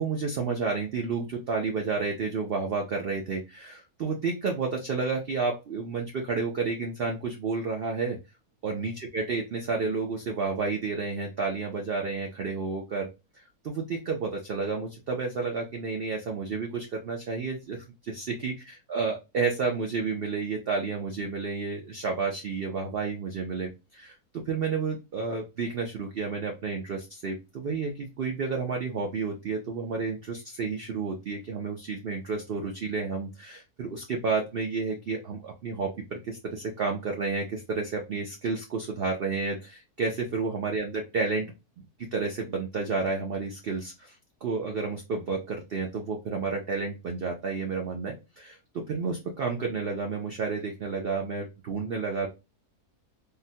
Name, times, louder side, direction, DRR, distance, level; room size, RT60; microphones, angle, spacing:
voice 1, 0.0-8.2 8.6-13.1 13.3-41.5 41.8-41.9 42.1-48.6 48.9-52.3, right 4 dB, 85° right, 2 dB, 0.5 m, -31 dB
3.7 x 2.1 x 2.6 m, 0.26 s
omnidirectional pair, 1.7 m